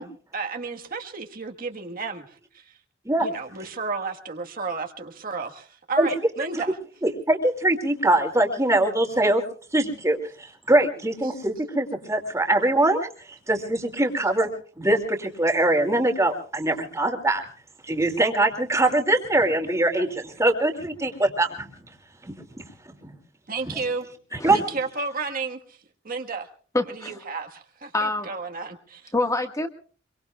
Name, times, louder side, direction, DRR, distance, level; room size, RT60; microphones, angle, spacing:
voice 1, 0.0-2.7 3.2-6.7 11.2-11.4 23.5-24.1 24.7-25.8 26.0-26.5 26.9-29.1, right 4 dB, 45° right, 4 dB, 1.5 m, -32 dB
voice 2, 7.0-9.4 9.7-10.2 10.7-14.5 14.8-17.4 17.9-21.7 22.2-22.4 23.7-23.8 24.4-24.6, right 1 dB, 15° right, 4 dB, 2.5 m, -22 dB
voice 3, 24.3-24.6 26.7-27.2 27.9-28.3 29.1-29.7, left 2 dB, 15° left, 6 dB, 1.6 m, -26 dB
25.5 x 23.0 x 2.4 m, 0.42 s
head